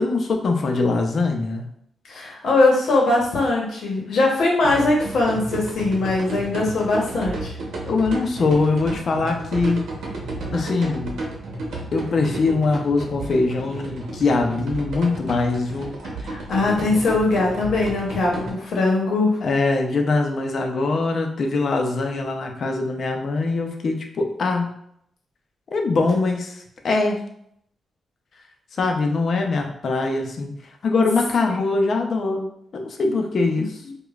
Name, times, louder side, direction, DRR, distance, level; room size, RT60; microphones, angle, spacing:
voice 1, 0.0-1.6 7.9-9.9 10.5-11.2 11.9-16.0 19.4-24.7 25.7-27.2 28.8-30.5 30.8-33.8, left 3 dB, 50° left, 3 dB, 0.5 m, -22 dB
voice 2, 2.1-7.6 16.2-19.4, left 2 dB, 75° left, -2 dB, 0.9 m, -21 dB
sound 1, 4.6-18.5, right 2 dB, 85° right, 0.8 m, -32 dB
4.9 x 2.2 x 2.3 m, 0.72 s
wide cardioid pair, 150°, 0 cm